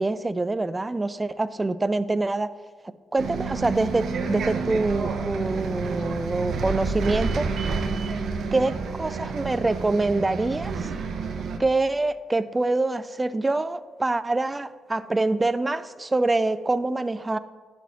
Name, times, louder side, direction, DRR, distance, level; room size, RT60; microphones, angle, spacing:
voice 1, 0.0-2.5 3.1-7.5 8.5-8.7 9.0-10.9 11.6-17.4, right 2 dB, 20° right, 13 dB, 0.3 m, -25 dB
Bus, 3.2-11.6, right 4 dB, 65° right, 0.6 m, -29 dB
11.0 x 6.1 x 2.8 m, 1.5 s
cardioid pair, 90°, 0 cm